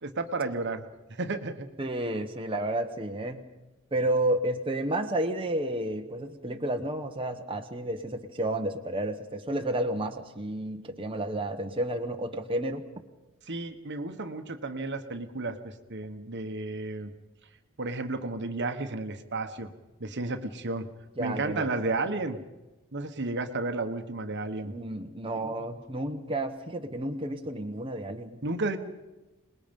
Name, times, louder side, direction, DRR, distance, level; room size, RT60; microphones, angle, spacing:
voice 1, 0.0-0.8 1.1-1.7 13.5-17.1 17.8-19.7 20.0-20.9 21.2-22.4 22.9-24.7 28.4-28.8, right 3 dB, 55° right, 8 dB, 1.3 m, -32 dB
voice 2, 1.8-3.4 3.9-12.9 21.2-21.7 24.6-28.4, right 1 dB, 25° right, 4 dB, 1.1 m, -31 dB
26.5 x 20.5 x 5.3 m, 1.1 s
head